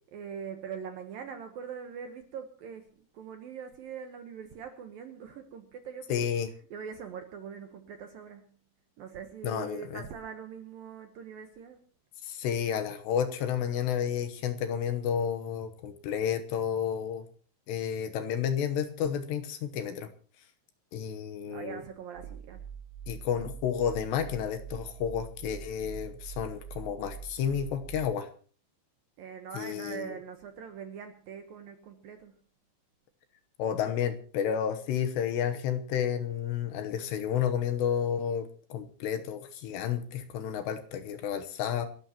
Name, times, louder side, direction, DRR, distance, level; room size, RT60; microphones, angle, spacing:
voice 1, 0.1-6.3 6.7-8.5 9.0-11.8 21.4-22.7 29.2-32.3, right 7 dB, 70° right, 6 dB, 2.3 m, -42 dB
voice 2, 6.1-6.5 9.4-10.0 12.2-17.3 17.7-20.1 20.9-21.8 23.1-28.3 29.5-30.1 33.6-41.9, left 8 dB, 75° left, 8 dB, 2.9 m, -31 dB
sound 1, 22.2-28.0, right 8 dB, 90° right, 6.5 m, -44 dB
28.0 x 12.5 x 3.0 m, 0.42 s
omnidirectional pair, 5.5 m